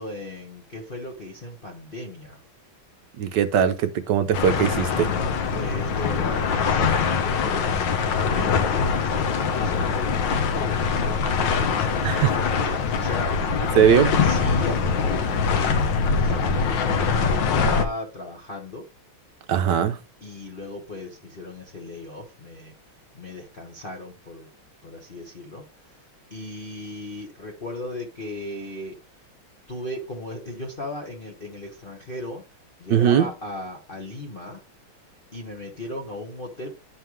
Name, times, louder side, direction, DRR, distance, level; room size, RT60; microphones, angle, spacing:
voice 1, 0.0-2.4 5.5-9.3 9.5-18.9 20.2-22.7 23.1-24.5 24.8-26.0 26.3-29.0 29.7-32.4 32.8-34.6 35.3-36.8, left 1 dB, 30° left, 1.2 m, -36 dB
voice 2, 3.2-5.1 12.0-12.3 13.7-14.1 19.5-20.0 32.9-33.3, right 8 dB, 65° right, 1.2 m, -20 dB
sound 1, 4.3-17.9, left 5 dB, 65° left, 1.6 m, -23 dB
11.0 x 5.6 x 3.1 m
omnidirectional pair, 2.3 m